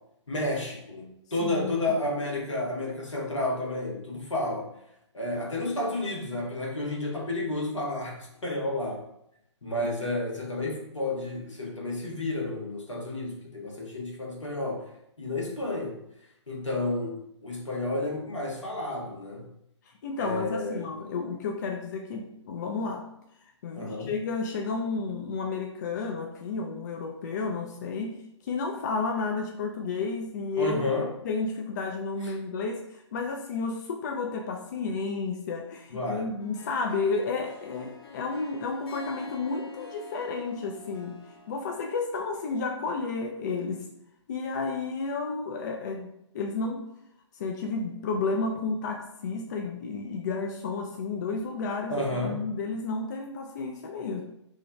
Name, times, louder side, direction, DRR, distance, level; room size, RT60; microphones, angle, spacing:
voice 1, 0.3-4.7 5.1-9.0 9.6-14.9 15.2-16.0 16.5-17.2 17.4-19.5 20.2-20.9 23.7-24.1 30.6-31.1 32.2-32.3 35.9-36.3 51.9-52.4, left 2 dB, 80° left, -2 dB, 1.2 m, -31 dB
voice 2, 1.4-1.7 20.0-23.1 23.6-30.8 31.2-41.2 41.5-43.8 44.3-46.9 47.4-54.2, left 4 dB, 40° left, 2 dB, 0.3 m, -32 dB
Harp, 36.4-41.7, left 3 dB, 55° left, 0.7 m, -47 dB
3.1 x 2.2 x 4.0 m, 0.79 s
figure-of-eight pair, 130°, 15 cm